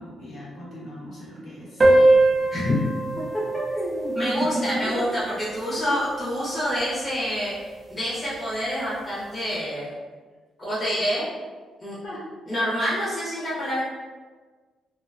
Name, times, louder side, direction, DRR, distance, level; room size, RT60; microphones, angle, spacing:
voice 1, 0.0-1.9 4.2-5.1 5.8-6.0 12.0-12.3, equal, 55° left, -7 dB, 1.0 m, -34 dB
sound 1, 1.8-6.8, right 2 dB, 20° right, 0.4 m, -23 dB
voice 2, 3.7-7.5 7.9-9.9 10.6-11.3 11.8-12.0 12.5-13.8, equal, 20° left, -9 dB, 0.7 m, -27 dB
2.6 x 2.1 x 2.5 m, 1.4 s
cardioid pair, 150°, 0 cm